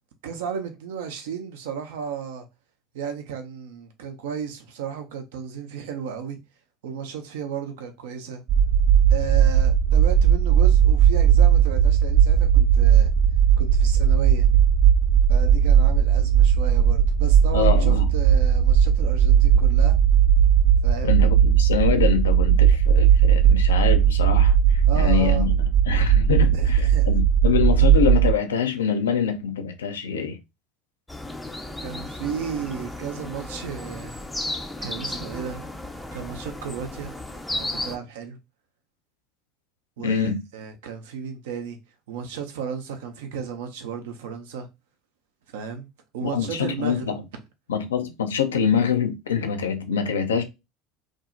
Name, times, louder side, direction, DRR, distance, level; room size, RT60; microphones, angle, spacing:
voice 1, 0.2-2.4 2.9-6.4 6.8-8.4 9.1-13.1 13.6-14.6 15.3-20.0 20.8-21.2 24.9-25.5 26.5-27.1 31.8-34.2 34.8-35.7 36.1-37.2 37.6-38.4 40.0-41.8 42.1-44.7 45.5-45.9 46.1-47.1, right 7 dB, 70° right, 0.5 m, -34 dB
sound 1, 8.5-28.3, right 8 dB, 40° right, 0.9 m, -17 dB
voice 2, 17.5-18.1 21.0-25.5 25.9-30.4 40.0-40.4 46.2-47.2 47.7-50.4, left 7 dB, 80° left, 0.4 m, -25 dB
sound 2, 31.1-38.0, left 1 dB, 5° left, 0.4 m, -34 dB
2.5 x 2.0 x 2.5 m
figure-of-eight pair, 70°, 0 cm